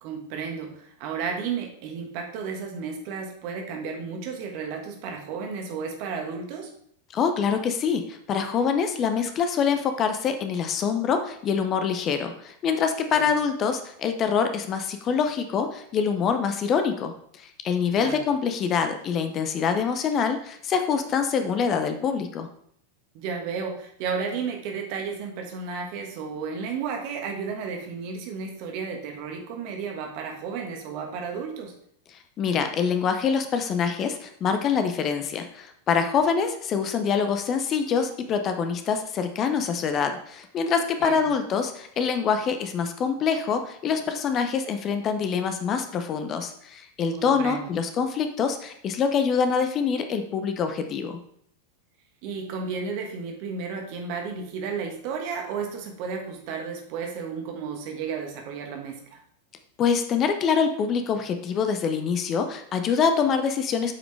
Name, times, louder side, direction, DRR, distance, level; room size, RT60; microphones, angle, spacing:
voice 1, 0.0-6.7 13.1-13.3 18.0-18.2 23.1-31.7 41.0-41.3 47.1-47.7 52.2-59.2, right 5 dB, 45° right, 2 dB, 1.4 m, -33 dB
voice 2, 7.1-22.5 32.1-51.2 59.8-63.9, left 6 dB, 30° left, 7 dB, 0.7 m, -25 dB
8.4 x 5.0 x 3.4 m, 0.66 s
figure-of-eight pair, 90°, 0 cm